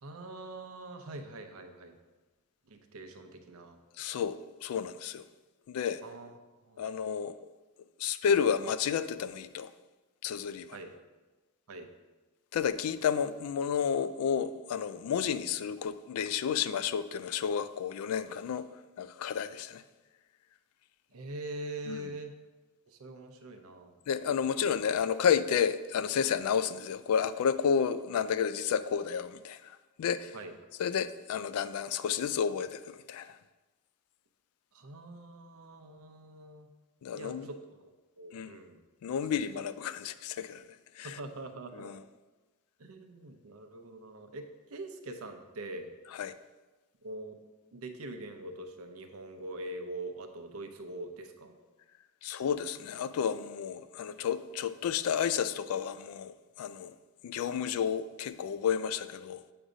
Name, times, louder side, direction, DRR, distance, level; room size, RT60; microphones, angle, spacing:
voice 1, 0.0-2.0 2.7-3.8 6.0-6.4 6.7-7.0 10.7-11.0 11.7-11.9 21.1-22.3 22.9-24.0 24.6-24.7 30.3-30.5 34.7-36.7 37.1-37.7 38.2-38.8 39.2-39.3 41.0-41.9 42.8-45.9 47.0-47.3 47.7-51.6, right 2 dB, 70° right, 0.6 m, -43 dB
voice 2, 4.0-5.3 5.7-6.0 6.8-7.3 8.0-9.7 10.2-10.8 12.5-18.7 19.0-19.8 21.9-22.1 24.1-30.4 30.8-33.4 37.0-37.5 38.3-38.6 39.0-40.7 41.0-41.2 41.7-42.0 46.1-46.3 52.2-56.9 57.2-59.4, left 7 dB, 80° left, 0.3 m, -31 dB
7.8 x 2.6 x 4.9 m
head